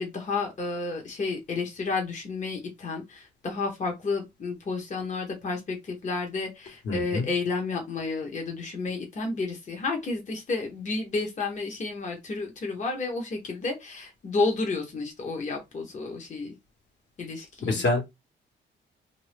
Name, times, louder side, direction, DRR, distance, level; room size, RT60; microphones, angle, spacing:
voice 1, 0.0-16.5 17.2-17.8, left 3 dB, 40° left, 0.9 m, -31 dB
voice 2, 6.8-7.3 17.7-18.0, left 2 dB, 60° left, 1.3 m, -25 dB
2.5 x 2.4 x 3.4 m
cardioid pair, 90°, 20 cm